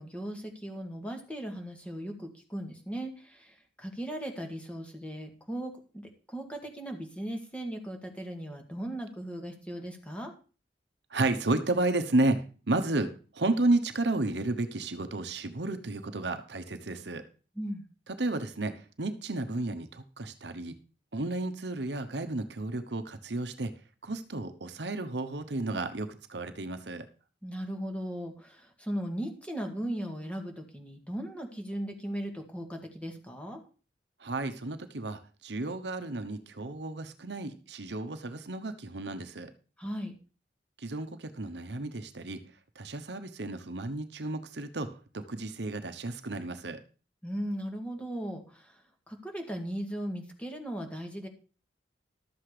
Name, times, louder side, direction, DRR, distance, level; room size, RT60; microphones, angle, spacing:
voice 1, 0.0-10.3 17.6-17.8 27.4-33.6 39.8-40.1 47.2-48.8 49.1-51.3, right 1 dB, 5° left, 3 dB, 2.1 m, -37 dB
voice 2, 11.1-17.2 18.1-20.8 21.1-23.7 24.0-27.1 34.2-39.5 40.8-42.4 42.7-46.8, right 2 dB, 70° right, 9 dB, 1.1 m, -32 dB
12.5 x 7.8 x 5.0 m, 0.36 s
head